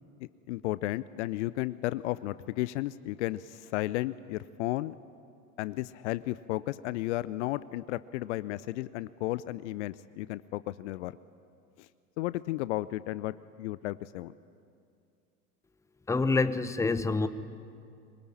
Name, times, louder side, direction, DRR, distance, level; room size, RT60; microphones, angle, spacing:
voice 1, 0.5-4.9 5.6-11.1 12.2-14.3, left 17 dB, 50° left, 17 dB, 0.7 m, -33 dB
voice 2, 16.1-17.3, left 3 dB, 5° left, 13 dB, 0.9 m, -26 dB
24.5 x 23.5 x 9.9 m, 2.4 s
figure-of-eight pair, 80°, 46 cm